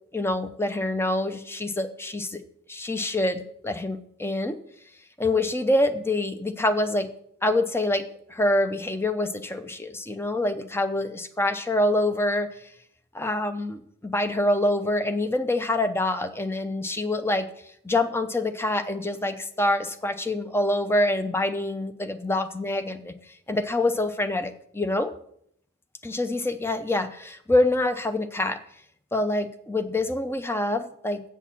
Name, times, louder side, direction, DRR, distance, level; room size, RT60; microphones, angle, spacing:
voice 1, 0.1-2.4 2.7-4.6 5.2-7.1 7.4-8.0 8.3-12.5 13.1-17.5 17.8-23.2 23.5-25.1 26.0-28.6 29.1-31.2, left 1 dB, 10° left, 9 dB, 0.6 m, -26 dB
8.2 x 6.5 x 7.3 m, 0.68 s
head